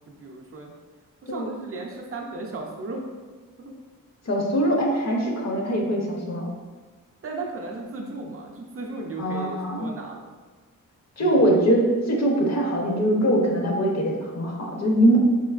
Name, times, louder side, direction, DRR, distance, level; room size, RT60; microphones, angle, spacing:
voice 1, 0.1-0.7 1.2-3.0 3.6-3.7 7.2-10.3 11.2-11.5, right 3 dB, 40° right, 0 dB, 0.5 m, -36 dB
voice 2, 4.3-6.5 9.2-9.9 11.2-15.2, right 1 dB, 50° left, 0 dB, 0.7 m, -22 dB
4.3 x 3.0 x 2.3 m, 1.4 s
wide cardioid pair, 145°, 34 cm